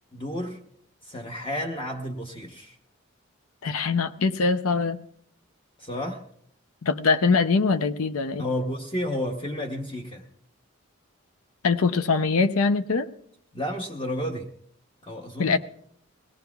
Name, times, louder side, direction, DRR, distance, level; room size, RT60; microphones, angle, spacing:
voice 1, 0.1-0.6 1.0-2.8 5.8-6.2 8.4-10.2 13.5-14.5 15.0-15.6, left 1 dB, 25° left, 2 dB, 0.9 m, -31 dB
voice 2, 3.6-5.0 6.8-8.4 11.6-13.1 15.4-15.6, left 4 dB, 80° left, 11 dB, 0.6 m, -23 dB
22.0 x 17.5 x 2.3 m, 0.66 s
head